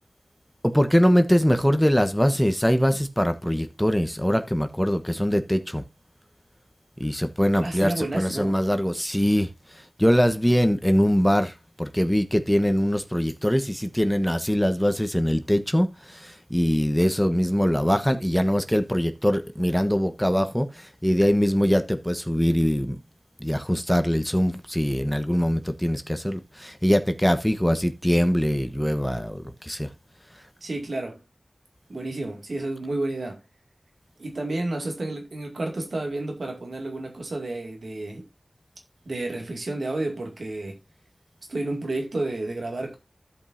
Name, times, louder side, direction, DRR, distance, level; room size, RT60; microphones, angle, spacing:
voice 1, 0.6-5.8 7.0-23.0 23.4-29.9, equal, 5° left, 1.1 m, -22 dB
voice 2, 7.6-8.6 30.6-31.2 31.9-33.4 34.2-38.3 39.1-40.8 41.5-43.0, right 2 dB, 75° right, 2.3 m, -31 dB
15.5 x 5.4 x 2.6 m
wide cardioid pair, 45°, 0 cm